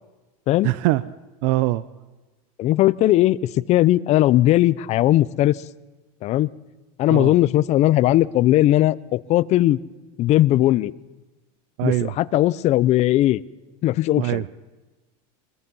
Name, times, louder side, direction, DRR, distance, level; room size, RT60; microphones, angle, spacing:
voice 1, 0.6-1.0 1.4-1.8 7.1-7.3 11.8-12.1 14.2-14.5, right 18 dB, 65° right, 17 dB, 0.7 m, -22 dB
voice 2, 2.6-5.6 6.2-6.5 7.0-9.8 10.2-10.9 11.8-13.4 13.8-14.4, left 15 dB, 40° left, 18 dB, 0.7 m, -18 dB
27.0 x 21.5 x 5.5 m, 1.2 s
supercardioid pair, 145°, 18 cm